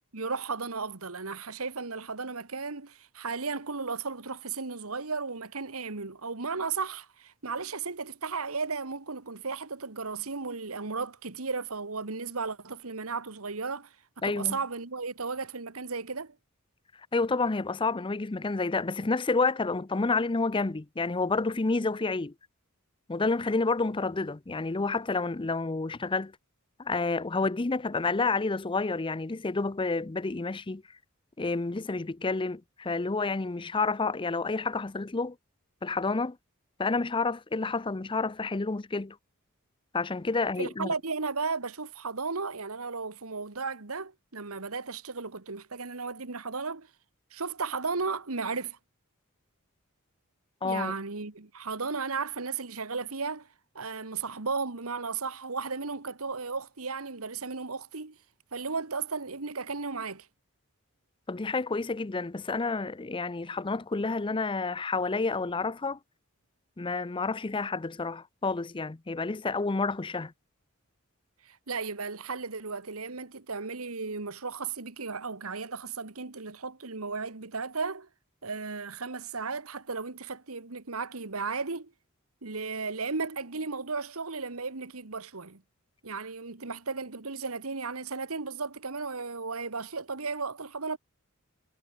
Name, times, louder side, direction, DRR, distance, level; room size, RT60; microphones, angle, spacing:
voice 1, 0.1-13.9 14.2-16.3 40.6-46.9 47.3-48.8 50.6-53.5 53.7-58.2 58.5-60.3 71.4-78.1 78.4-81.9 82.4-85.6 86.0-91.0, right 4 dB, 90° right, 1.7 m, -35 dB
voice 2, 14.2-14.6 17.1-22.3 23.1-26.3 26.8-30.8 31.4-35.4 35.8-36.4 36.8-39.2 39.9-40.9 50.6-50.9 61.3-66.0 66.8-70.3, left 3 dB, 25° left, 0.6 m, -29 dB
head